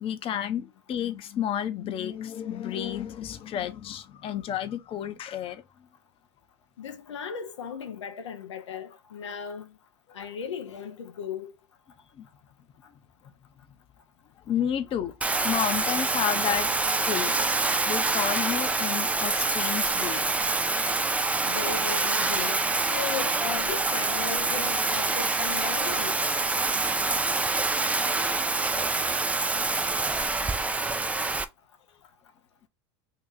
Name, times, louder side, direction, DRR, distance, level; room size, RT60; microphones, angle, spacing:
voice 1, 0.0-5.6 12.2-12.3 14.5-15.1 15.4-16.7 17.1-17.3 17.8-20.2 27.6-27.7, left 9 dB, 40° left, 0.6 m, -31 dB
voice 2, 6.8-9.7 10.1-11.5 21.4-26.2, left 7 dB, 90° left, 0.5 m, -36 dB
Bathtub (filling or washing), 15.2-31.4, right 3 dB, 10° right, 0.3 m, -26 dB
2.9 x 2.8 x 3.7 m
hypercardioid pair, 85°, 15 cm